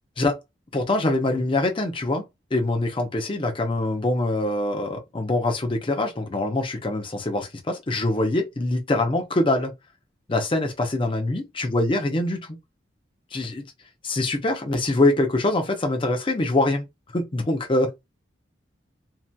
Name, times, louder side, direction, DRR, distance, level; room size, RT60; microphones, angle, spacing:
voice 1, 0.7-2.2 2.5-9.7 10.3-12.6 13.3-13.6 14.0-16.9 17.1-17.9, left 2 dB, 30° left, 0.6 m, -24 dB
2.7 x 2.3 x 2.2 m
head